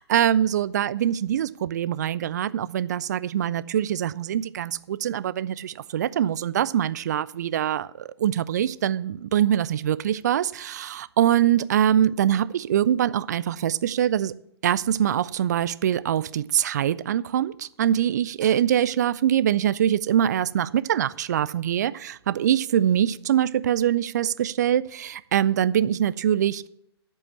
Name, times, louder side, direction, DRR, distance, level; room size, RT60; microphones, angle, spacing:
voice 1, 0.0-14.3 14.6-26.7, right 10 dB, 40° right, 17 dB, 0.4 m, -23 dB
12.0 x 5.4 x 7.1 m, 0.74 s
figure-of-eight pair, 120°, 14 cm